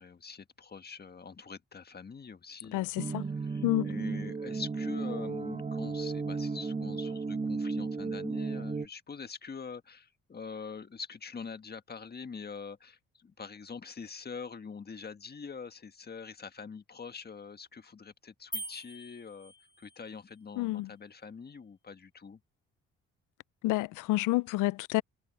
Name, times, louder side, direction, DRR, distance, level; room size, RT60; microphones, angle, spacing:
voice 1, 0.0-22.4, left 5 dB, 30° left, 1.6 m, -44 dB
sound 1, 3.0-8.9, right 4 dB, 20° right, 1.5 m, -34 dB
sound 2, 18.5-20.1, right 1 dB, 15° left, 4.1 m, -42 dB
voice 2, 20.6-20.9 23.6-25.0, left 19 dB, 90° left, 0.5 m, -28 dB
cardioid pair, 90°, 30 cm